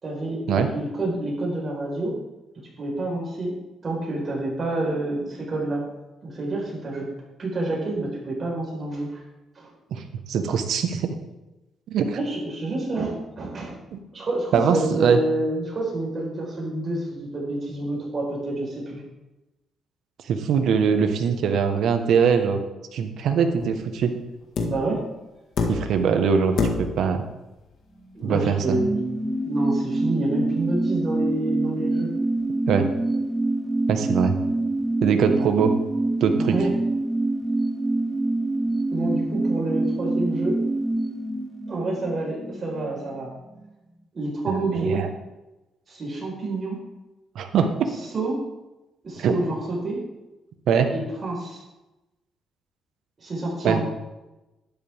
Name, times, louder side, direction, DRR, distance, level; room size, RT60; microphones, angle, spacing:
voice 1, 0.0-2.2 2.8-3.6 3.8-5.8 6.2-7.1 7.4-9.2 9.5-9.7 12.1-13.8 14.1-19.0 24.6-25.0 28.1-29.0 29.4-32.1 36.5-36.7 38.9-40.6 41.7-43.3 44.1-45.0 45.9-46.8 48.1-48.4 49.0-50.0 50.9-51.6 53.2-53.8, right 2 dB, 35° right, -3 dB, 4.6 m, -28 dB
voice 2, 10.3-11.1 11.9-12.2 13.9-14.0 14.5-15.2 20.3-22.6 22.9-24.1 25.7-27.2 28.2-28.8 32.7-32.9 33.9-34.3 35.0-35.7 36.2-36.5 44.5-45.1 47.3-47.7 49.2-49.3 50.7-50.9 53.6-53.8, right 6 dB, 75° right, 6 dB, 1.3 m, -22 dB
sound 1, 23.6-23.9 24.6-24.9 25.6-26.1 26.6-27.1 28.5-28.6, left 4 dB, 65° left, 1.7 m, -26 dB
sound 2, 28.0-43.2 43.5-43.6, right 2 dB, 5° right, 1.1 m, -26 dB
12.0 x 10.5 x 3.6 m, 1.0 s
cardioid pair, 120°, 0 cm